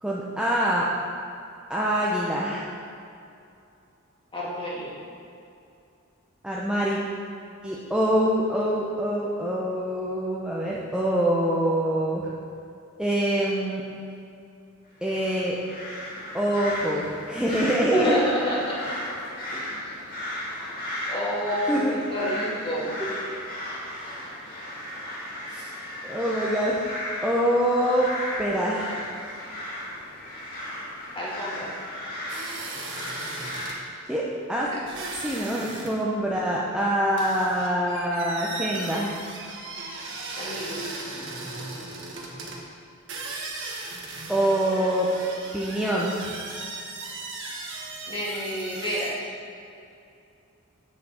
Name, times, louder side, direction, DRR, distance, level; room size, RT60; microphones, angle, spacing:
voice 1, 0.0-0.9 1.7-2.7 6.4-7.0 7.6-12.3 13.0-13.8 15.0-15.6 16.3-18.1 21.7-22.0 23.0-23.2 25.5-25.6 26.0-26.8 27.2-28.1 28.4-29.0 34.1-34.2 34.5-34.7 35.2-39.2 44.3-45.1 45.5-46.3, right 1 dB, 5° right, -5 dB, 0.6 m, -25 dB
voice 2, 4.3-4.9 17.6-19.0 19.5-20.0 21.1-23.0 31.1-31.7 34.7-34.8 40.4-40.8 48.1-49.1, equal, 25° left, -6 dB, 2.0 m, -29 dB
sound 1, 15.1-33.7, left 1 dB, 45° left, 1.9 m, -35 dB
sound 2, 32.3-33.8 34.8-36.0 36.2-36.3 37.2-42.6 43.1-49.1, right 3 dB, 60° right, 1.2 m, -37 dB
7.5 x 7.0 x 4.2 m, 2.6 s
head